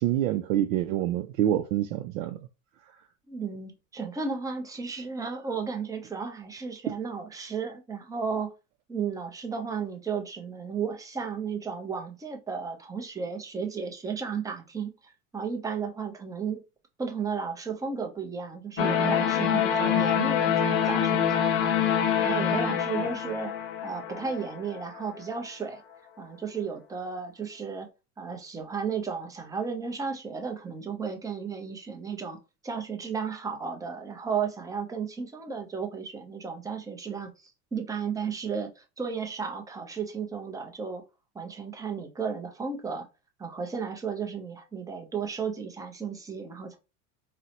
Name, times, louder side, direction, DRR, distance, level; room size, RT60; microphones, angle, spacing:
voice 1, 0.0-2.4, right 12 dB, 80° right, 0.5 m, -26 dB
voice 2, 3.3-8.5 8.9-16.6 17.0-21.8 22.2-23.5 23.8-25.8 26.2-27.9 28.2-32.4 32.6-41.0 41.3-43.0 43.4-46.8, right 6 dB, 10° right, 0.5 m, -34 dB
sound 1, 18.8-24.8, left 8 dB, 50° left, 0.5 m, -25 dB
3.9 x 2.1 x 2.8 m
supercardioid pair, 115°, 41 cm